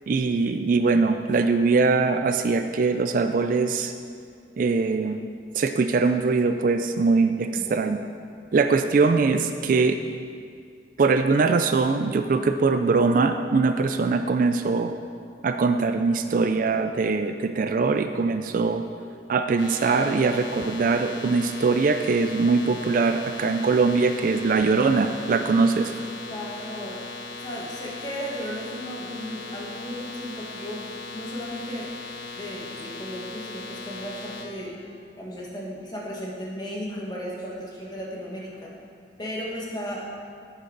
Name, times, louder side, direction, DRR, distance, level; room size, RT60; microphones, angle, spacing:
voice 1, 0.1-3.9 4.6-5.2 5.6-8.0 8.5-10.0 11.0-14.9 15.4-18.8 19.3-25.9, right 4 dB, 50° right, 8 dB, 0.3 m, -22 dB
voice 2, 7.5-7.9 17.6-17.7 26.3-27.0 27.4-30.8 31.1-31.9 32.3-34.7 35.2-38.7 39.2-40.1, equal, 25° left, -3 dB, 1.6 m, -35 dB
sound 1, 19.6-34.4, left 3 dB, 75° left, 1.2 m, -38 dB
9.8 x 8.3 x 3.9 m, 2.2 s
head